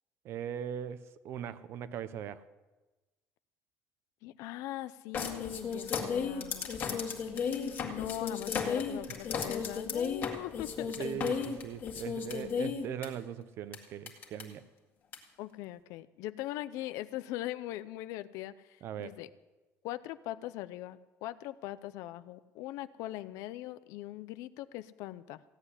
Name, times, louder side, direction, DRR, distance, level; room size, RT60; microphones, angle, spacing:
voice 1, 0.2-2.4 9.4-9.5 11.0-14.6 18.8-19.2, right 9 dB, 50° right, 14 dB, 0.7 m, -40 dB
voice 2, 4.2-7.0 7.3-10.9 15.4-19.3 19.8-25.4, left 15 dB, 85° left, 15 dB, 0.7 m, -41 dB
sound 1, 5.1-13.1 13.7-13.8 14.1-14.4 15.1-15.2, left 6 dB, 40° left, 2.0 m, -34 dB
16.0 x 8.0 x 9.8 m, 1.2 s
cardioid pair, 170°, 5 cm